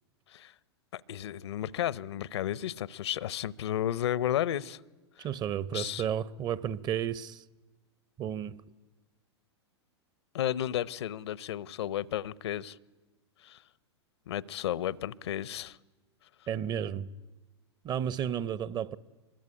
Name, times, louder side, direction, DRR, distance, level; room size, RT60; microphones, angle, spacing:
voice 1, 0.9-4.8 5.2-5.3 5.7-6.1 10.3-12.8 13.4-13.6 14.3-15.8, left 11 dB, 70° left, 0.8 m, -33 dB
voice 2, 5.2-7.4 8.2-8.6 16.5-17.1 17.8-19.0, right 9 dB, 30° right, 0.8 m, -32 dB
25.0 x 22.0 x 9.9 m
hypercardioid pair, 105°, 15 cm